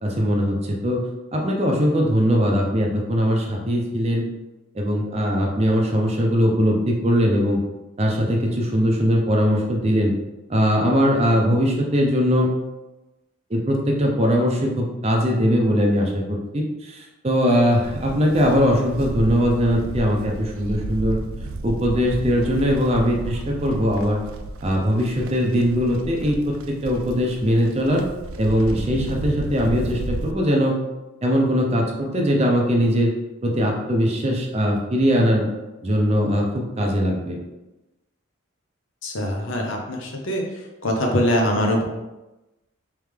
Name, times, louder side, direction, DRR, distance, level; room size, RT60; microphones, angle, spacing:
voice 1, 0.0-4.3 4.7-7.6 8.0-10.1 10.5-12.5 13.5-21.2 21.6-24.2 24.6-28.0 28.4-30.8 31.2-33.1 33.4-35.5 35.8-37.4, equal, 30° right, 0 dB, 0.5 m, -20 dB
Livestock farm animals working animals, 17.8-30.3, right 2 dB, 80° right, 0.4 m, -33 dB
voice 2, 39.0-40.4 40.8-41.8, equal, 65° left, 0 dB, 0.7 m, -22 dB
3.5 x 3.3 x 3.3 m, 1.0 s
head